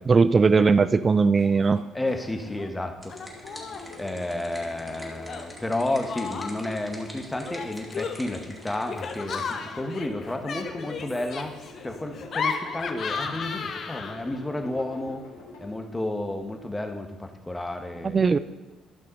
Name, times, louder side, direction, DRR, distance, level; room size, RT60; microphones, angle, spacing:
voice 1, 0.1-1.8 18.0-18.4, right 4 dB, 35° right, 15 dB, 0.4 m, -19 dB
Laughter, 1.4-1.8 2.1-2.7 3.1-4.0 5.3-6.8 7.4-14.4, left 5 dB, 55° left, 1.0 m, -35 dB
voice 2, 1.9-3.1 4.0-11.5 11.8-15.3 15.6-18.3, left 1 dB, 15° left, 5 dB, 1.4 m, -31 dB
sound 1, 3.0-9.6, equal, 5° right, 2.6 m, -46 dB
sound 2, 3.1-15.7, left 3 dB, 80° left, 2.8 m, -46 dB
12.5 x 5.7 x 5.5 m, 1.1 s
supercardioid pair, 65°, 0 cm